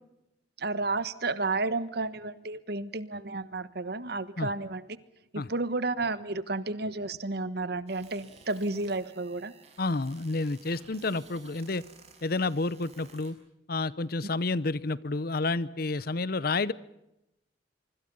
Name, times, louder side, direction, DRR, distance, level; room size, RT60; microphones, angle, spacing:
voice 1, 0.6-4.9 5.3-9.5, right 3 dB, 60° right, 15 dB, 1.3 m, -32 dB
sound 1, 7.9-13.3, right 4 dB, 35° right, 5.7 m, -55 dB
voice 2, 9.8-11.8 12.2-13.4 13.7-16.7, left 3 dB, 55° left, 19 dB, 0.8 m, -30 dB
25.5 x 25.0 x 5.4 m, 0.87 s
head